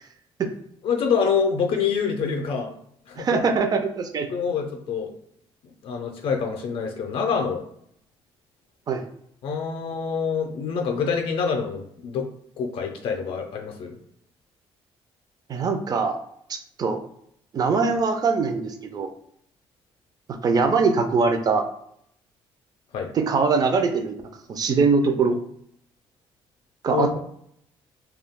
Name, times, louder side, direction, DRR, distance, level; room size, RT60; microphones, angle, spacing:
voice 1, 0.8-2.7 3.1-3.4 4.3-5.1 5.8-7.6 9.4-12.3 12.6-14.0 22.9-23.1 26.9-27.2, left 6 dB, 65° left, 3 dB, 0.4 m, -26 dB
voice 2, 3.2-4.3 8.9-9.0 15.5-16.2 16.5-17.0 17.5-19.1 20.4-21.7 23.1-24.1 24.5-25.4 26.8-27.2, right 4 dB, 40° right, 6 dB, 0.4 m, -22 dB
2.3 x 2.2 x 3.4 m, 0.70 s
cardioid pair, 110°, 10 cm